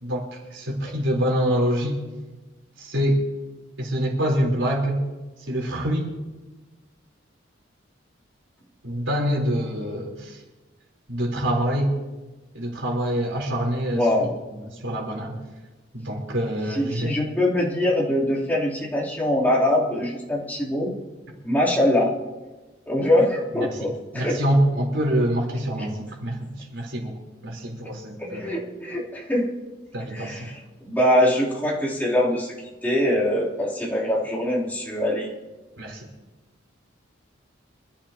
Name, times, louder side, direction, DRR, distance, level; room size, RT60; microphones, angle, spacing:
voice 1, 0.0-2.0 2.8-3.2 3.8-5.0 5.4-6.1 8.8-10.4 11.1-12.0 12.5-14.1 14.6-15.4 15.9-17.1 23.5-23.9 24.1-27.2 27.4-28.5 29.9-30.5 35.8-36.1, equal, 75° right, -2 dB, 3.8 m, -25 dB
voice 2, 13.9-14.3 16.7-20.9 21.4-22.1 22.9-24.4 28.2-29.7 30.1-32.5 32.8-35.3, left 1 dB, 10° left, -7 dB, 3.3 m, -23 dB
25.5 x 14.0 x 2.9 m, 1.2 s
head